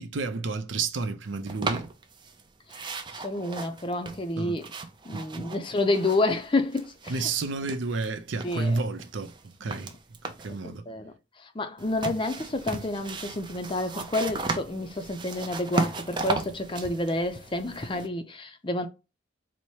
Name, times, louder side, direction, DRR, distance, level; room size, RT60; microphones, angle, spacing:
voice 1, 0.0-1.9 4.4-4.6 5.1-5.5 7.1-9.9 10.4-10.8, right 3 dB, 75° right, 0.6 m, -31 dB
sound 1, 1.5-2.4 2.7-6.4 6.7-8.1 8.4-10.6 11.8-18.1, right 3 dB, 25° right, 0.5 m, -36 dB
voice 2, 2.7-4.7 5.0-7.3 8.4-8.8 9.7-9.8 10.5-18.9, left 2 dB, 25° left, 0.5 m, -29 dB
4.2 x 2.1 x 4.6 m
head